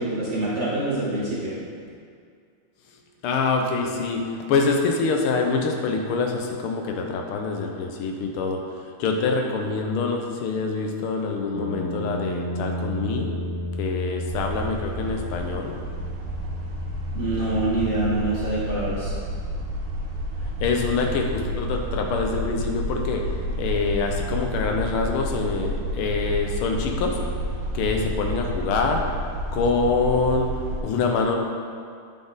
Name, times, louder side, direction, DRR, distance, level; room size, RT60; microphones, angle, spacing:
voice 1, 0.0-1.5 17.1-19.1, right 2 dB, 45° right, -8 dB, 1.1 m, -25 dB
voice 2, 3.2-8.6 9.0-13.3 13.8-15.8 20.6-23.3 23.6-27.2 27.7-29.0 29.5-30.5 30.8-31.4, left 4 dB, 85° left, 2 dB, 1.6 m, -25 dB
sound 1, 11.5-25.6, equal, 35° left, 0.5 m, -36 dB
sound 2, 14.3-30.8, equal, 75° right, 1.5 m, -30 dB
8.5 x 4.1 x 3.9 m, 2.2 s
omnidirectional pair, 2.3 m